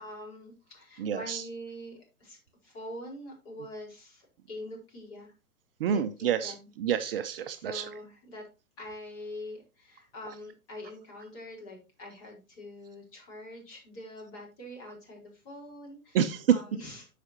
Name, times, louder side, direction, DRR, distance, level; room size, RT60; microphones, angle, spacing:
voice 1, 0.0-5.3 5.9-6.7 7.6-8.5 8.8-16.2 16.5-17.1, left 1 dB, 35° left, 0 dB, 4.3 m, -44 dB
voice 2, 1.0-1.4 5.8-7.9 16.1-16.5, right 9 dB, 40° right, 9 dB, 0.6 m, -28 dB
14.0 x 5.0 x 2.8 m, 0.30 s
figure-of-eight pair, 120°, 43 cm